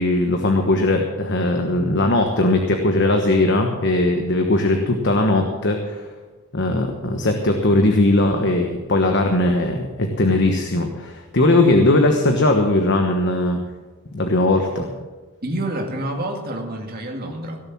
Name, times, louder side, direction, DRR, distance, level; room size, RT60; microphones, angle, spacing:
voice 1, 0.0-6.1 6.5-13.6 14.1-14.9, left 2 dB, 55° left, 4 dB, 1.2 m, -19 dB
voice 2, 15.4-17.6, right 1 dB, 45° right, 1 dB, 2.1 m, -28 dB
17.0 x 7.1 x 7.3 m, 1.3 s
head